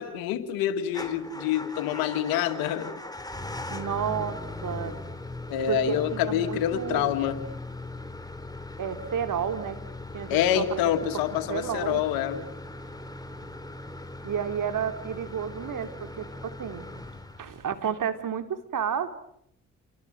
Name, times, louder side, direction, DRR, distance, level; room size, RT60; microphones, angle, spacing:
voice 1, 0.0-3.0 5.5-7.4 10.3-12.4, left 10 dB, 90° left, 9 dB, 2.2 m, -27 dB
Motor vehicle (road) / Engine starting / Idling, 0.9-17.8, left 2 dB, 10° left, 3.8 m, -39 dB
voice 2, 3.7-4.9 5.7-7.2 8.8-9.8 10.1-10.8 11.5-12.0 14.2-16.9 17.4-19.1, right 8 dB, 65° right, 8 dB, 3.1 m, -31 dB
30.0 x 23.5 x 7.8 m, 0.75 s
supercardioid pair, 45°, 35 cm